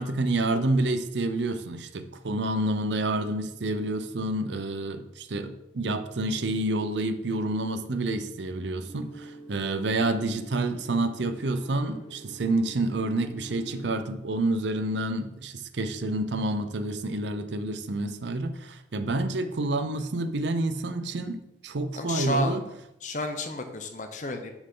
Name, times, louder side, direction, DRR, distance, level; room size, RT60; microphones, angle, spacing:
voice 1, 0.0-22.6, right 2 dB, 75° right, 10 dB, 0.6 m, -28 dB
sound 1, 8.8-13.9, right 2 dB, 30° right, 1.2 m, -47 dB
voice 2, 22.0-22.6 23.0-24.5, left 1 dB, 40° left, 6 dB, 0.8 m, -31 dB
6.3 x 6.3 x 3.8 m, 0.85 s
head